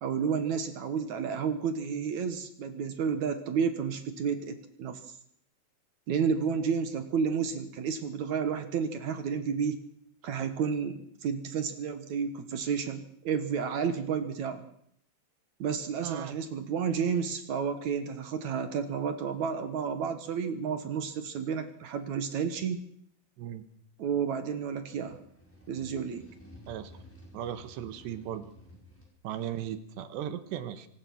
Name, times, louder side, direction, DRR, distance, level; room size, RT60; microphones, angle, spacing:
voice 1, 0.0-5.0 6.1-9.8 10.2-14.6 15.6-22.8 24.0-25.2 25.7-26.2, right 6 dB, 60° right, 9 dB, 2.1 m, -31 dB
voice 2, 16.0-16.4 23.4-23.6 26.7-26.9 27.3-28.5 29.2-30.9, right 10 dB, 80° right, 11 dB, 3.5 m, -37 dB
sound 1, 21.5-21.7 22.4-22.6 24.7-29.1, equal, 5° left, 5.3 m, -53 dB
25.0 x 18.5 x 6.1 m, 0.68 s
omnidirectional pair, 5.0 m